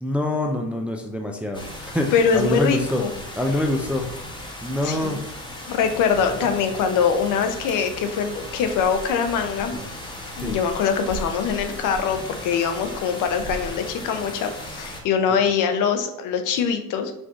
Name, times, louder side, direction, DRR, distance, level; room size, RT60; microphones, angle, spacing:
voice 1, 0.0-3.0 3.4-4.1 4.6-5.3 9.7-9.9 10.4-10.6, left 1 dB, 5° right, 2 dB, 0.4 m, -25 dB
sound 1, 1.5-15.0, left 1 dB, 15° left, 1.1 m, -36 dB
voice 2, 2.1-3.1 4.8-5.1 5.7-9.8 10.4-17.1, left 6 dB, 60° left, 7 dB, 0.7 m, -23 dB
4.8 x 2.6 x 3.6 m, 0.79 s
supercardioid pair, 95°, 35 cm